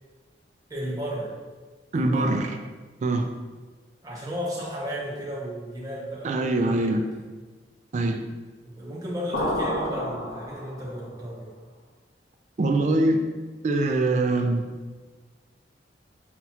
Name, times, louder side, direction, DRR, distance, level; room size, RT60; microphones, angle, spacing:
voice 1, 0.7-1.4 1.9-2.5 4.0-7.2 8.6-11.5, equal, 20° right, -6 dB, 0.7 m, -34 dB
voice 2, 1.9-2.5 3.0-3.3 6.2-7.0 7.9-8.2 12.6-13.3 13.6-14.7, right 2 dB, 40° right, 5 dB, 0.3 m, -23 dB
sound 1, 9.3-11.1, left 1 dB, 80° left, 0.7 m, -29 dB
5.8 x 2.3 x 2.8 m, 1.4 s
head